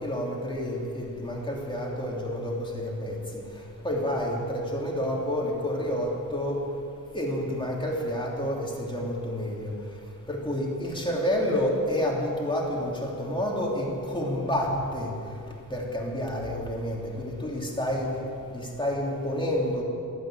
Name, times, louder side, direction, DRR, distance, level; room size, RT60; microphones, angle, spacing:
voice 1, 0.0-3.2 3.8-6.6 7.1-9.6 10.3-13.8 14.1-15.1 15.7-18.1 18.8-19.8, equal, 15° left, -3 dB, 3.2 m, -29 dB
13.0 x 12.0 x 9.1 m, 2.7 s
wide cardioid pair, 125°, 36 cm